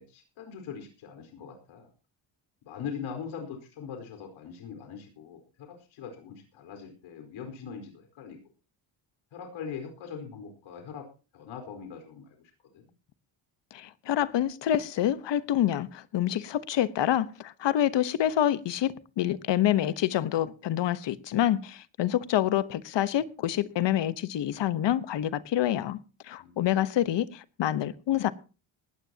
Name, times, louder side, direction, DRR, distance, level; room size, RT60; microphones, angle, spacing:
voice 1, 0.0-1.9 2.6-8.4 9.3-11.1 11.3-12.4 12.7-12.9 26.4-26.8, left 7 dB, 90° left, 4.6 m, -41 dB
voice 2, 13.7-26.0 26.2-28.3, left 11 dB, 65° left, 1.2 m, -27 dB
19.0 x 15.0 x 2.9 m
cardioid pair, 130°, 47 cm